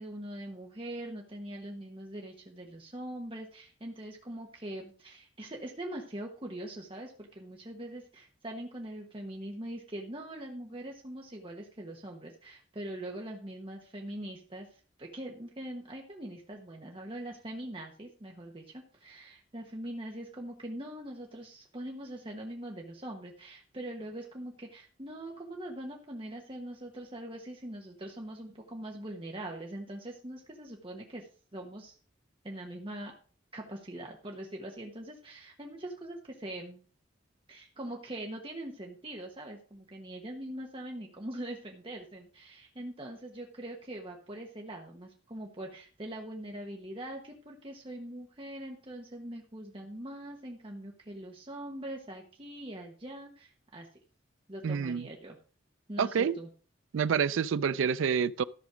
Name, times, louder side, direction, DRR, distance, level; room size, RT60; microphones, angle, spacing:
voice 1, 0.0-32.0 32.4-33.1 33.5-36.8 37.5-53.9 54.5-55.4 55.9-56.5, right 1 dB, 25° right, 1.2 m, -42 dB
voice 2, 54.6-55.0 56.0-56.4 56.9-58.4, right 7 dB, 85° right, 0.4 m, -28 dB
13.5 x 6.2 x 5.0 m
head